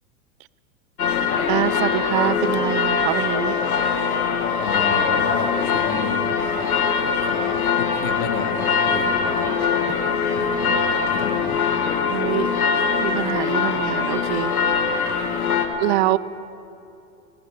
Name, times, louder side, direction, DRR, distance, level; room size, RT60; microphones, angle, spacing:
sound 1, 1.0-15.7, left 6 dB, 90° left, 1.6 m, -22 dB
voice 1, 1.5-3.6 12.1-12.6 13.0-14.5 14.9-15.0 15.8-16.2, right 17 dB, 50° right, 18 dB, 0.5 m, -24 dB
voice 2, 4.6-6.2 7.2-9.6 10.4-11.6, left 7 dB, 60° left, 6 dB, 1.9 m, -32 dB
20.0 x 18.5 x 3.6 m, 2.8 s
hypercardioid pair, 100°, 43 cm